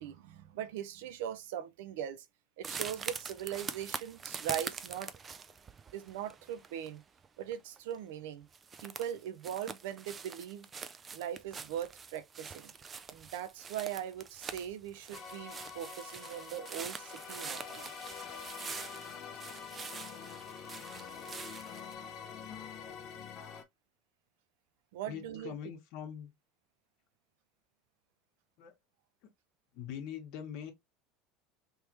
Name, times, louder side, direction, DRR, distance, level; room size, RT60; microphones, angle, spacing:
voice 1, 0.0-2.3 2.6-5.1 5.9-7.0 7.4-8.5 8.8-10.7 11.1-12.7 13.1-17.9 20.1-20.3 24.9-25.6, right 10 dB, 85° right, 0.6 m, -40 dB
sound 1, 2.6-7.3 7.5-8.0 8.2-8.3 8.5-21.9, right 5 dB, 20° right, 0.3 m, -44 dB
sound 2, 15.1-23.6, left 7 dB, 35° left, 0.8 m, -46 dB
voice 2, 25.0-26.3 28.6-28.7 29.7-30.7, left 9 dB, 55° left, 1.4 m, -42 dB
3.4 x 3.2 x 2.9 m
cardioid pair, 160°, 0 cm